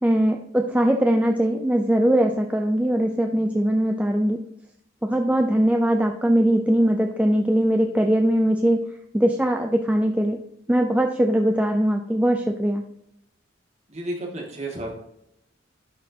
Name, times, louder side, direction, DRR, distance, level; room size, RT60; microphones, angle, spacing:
voice 1, 0.0-4.4 5.0-8.8 9.1-10.4 10.7-12.8, right 1 dB, 5° right, 4 dB, 0.3 m, -21 dB
voice 2, 13.9-14.9, right 1 dB, 35° right, 0 dB, 1.7 m, -32 dB
11.0 x 4.3 x 2.7 m, 0.77 s
head